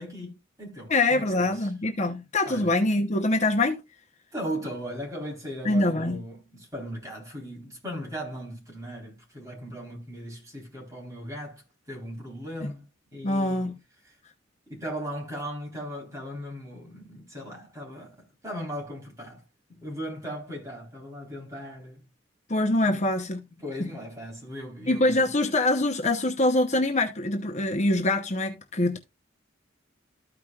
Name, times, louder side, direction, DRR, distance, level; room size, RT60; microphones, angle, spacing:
voice 1, 0.0-1.7 2.4-2.7 4.3-12.9 13.1-13.7 14.0-14.2 14.7-19.4 19.7-22.0 22.9-23.0 23.6-25.3, equal, 15° right, 3.9 m, -38 dB
voice 2, 0.9-3.8 5.6-6.2 12.6-12.7 13.2-13.7 22.5-23.4 23.8-23.9 24.9-29.0, left 2 dB, 35° left, 0.9 m, -24 dB
14.0 x 5.1 x 2.4 m
head